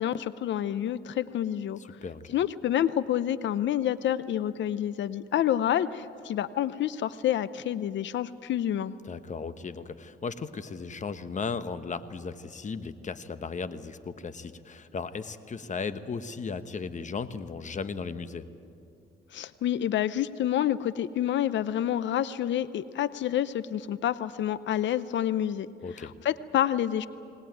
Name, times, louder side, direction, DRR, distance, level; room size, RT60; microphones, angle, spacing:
voice 1, 0.0-1.8 2.3-8.9 19.3-25.7 26.0-27.1, left 11 dB, 65° left, 16 dB, 0.6 m, -28 dB
voice 2, 1.8-2.2 9.0-18.4 25.8-26.1, left 5 dB, 40° left, 12 dB, 1.1 m, -36 dB
20.5 x 19.5 x 9.2 m, 2.6 s
cardioid pair, 90°, 20 cm